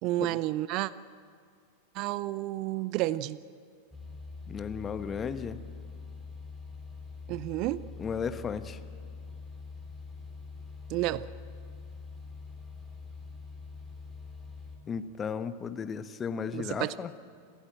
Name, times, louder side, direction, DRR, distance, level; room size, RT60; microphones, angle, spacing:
voice 1, 0.0-0.9 1.9-3.4 7.3-7.8 10.9-11.3 16.5-16.9, right 16 dB, 40° right, 19 dB, 0.5 m, -30 dB
sound 1, 3.9-14.8, left 4 dB, ahead, 4.0 m, -44 dB
voice 2, 4.5-5.6 8.0-8.8 14.9-17.1, left 6 dB, 20° left, 11 dB, 1.1 m, -35 dB
28.5 x 15.0 x 8.9 m, 2.2 s
figure-of-eight pair, 90°, 0 cm